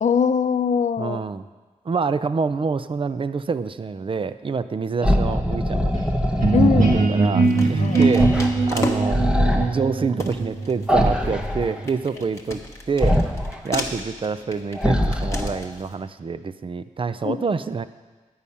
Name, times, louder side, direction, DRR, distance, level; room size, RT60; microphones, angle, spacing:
voice 1, 0.0-1.2 6.5-6.9 7.8-8.0 17.2-17.4, left 6 dB, 65° left, 10 dB, 0.6 m, -21 dB
voice 2, 1.0-1.5 1.9-5.9 6.9-9.2 9.5-12.6 12.9-13.2 13.6-17.9, right 5 dB, 40° right, 12 dB, 0.4 m, -27 dB
sound 1, 5.0-7.1 8.1-8.5 8.8-9.7 10.9-11.8 13.0-13.6 14.7-15.7, equal, 5° right, 1.0 m, -22 dB
sound 2, 6.3-6.7 7.4-9.3 9.8-9.9 10.2-15.9, left 2 dB, 20° left, 1.2 m, -34 dB
sound 3, 6.4-12.0, right 3 dB, 75° right, 1.7 m, -21 dB
11.0 x 5.6 x 8.5 m, 1.3 s
wide cardioid pair, 110°, 13 cm